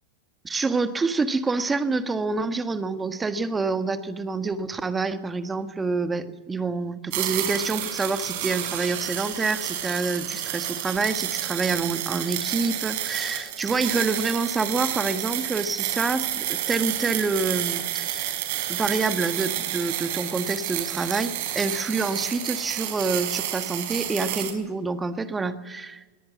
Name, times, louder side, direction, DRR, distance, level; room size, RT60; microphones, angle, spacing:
voice 1, 0.4-18.4 18.7-26.2, right 3 dB, 15° right, 9 dB, 1.6 m, -27 dB
sound 1, 7.1-24.5, right 12 dB, 60° right, 4.8 m, -30 dB
22.0 x 18.5 x 7.3 m, 1.2 s
hypercardioid pair, 115°, 0 cm